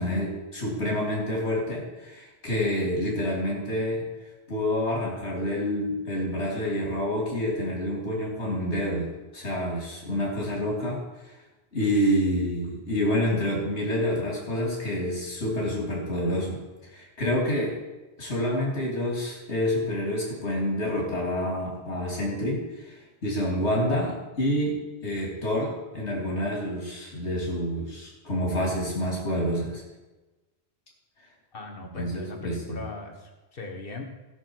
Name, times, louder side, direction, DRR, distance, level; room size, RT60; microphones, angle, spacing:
voice 1, 0.0-4.0 4.5-9.1 9.3-11.3 11.7-16.6 16.9-17.8 18.2-23.0 23.2-29.8 31.8-32.8, equal, 80° left, -3 dB, 3.0 m, -28 dB
voice 2, 31.5-34.0, left 3 dB, 55° left, 2 dB, 1.7 m, -39 dB
17.5 x 6.4 x 4.7 m, 1.1 s
omnidirectional pair, 1.1 m